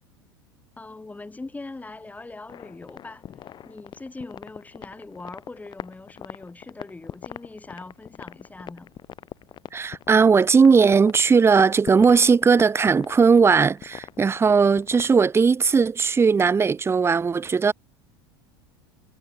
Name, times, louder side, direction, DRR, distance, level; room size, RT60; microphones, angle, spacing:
voice 1, 0.8-3.3 3.6-8.9, left 3 dB, 10° left, 4.3 m, -41 dB
sound 1, 2.5-15.3, left 10 dB, 35° left, 1.4 m, -41 dB
voice 2, 9.7-17.7, right 5 dB, 20° right, 1.0 m, -18 dB
hypercardioid pair, 85°, 13 cm